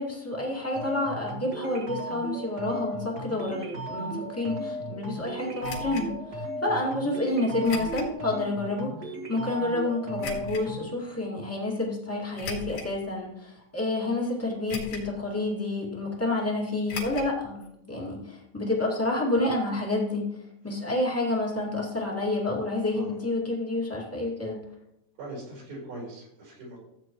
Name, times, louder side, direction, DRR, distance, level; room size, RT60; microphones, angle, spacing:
voice 1, 0.0-8.9 9.3-20.2 20.6-24.6, left 2 dB, 5° left, -3 dB, 1.1 m, -29 dB
sound 1, 0.7-10.9, right 1 dB, 55° right, 1.1 m, -36 dB
sound 2, 5.6-6.1 7.6-8.1 8.7-8.8 10.2-10.6 12.3-12.9 13.6-13.7 14.7-15.2 15.4-15.5 16.9-17.3 17.6-17.7 18.0-18.1, left 4 dB, 75° left, 3.7 m, -37 dB
voice 2, 25.2-26.8, right 1 dB, 85° right, -3 dB, 6.1 m, -41 dB
14.5 x 8.5 x 3.1 m, 0.80 s
omnidirectional pair, 4.2 m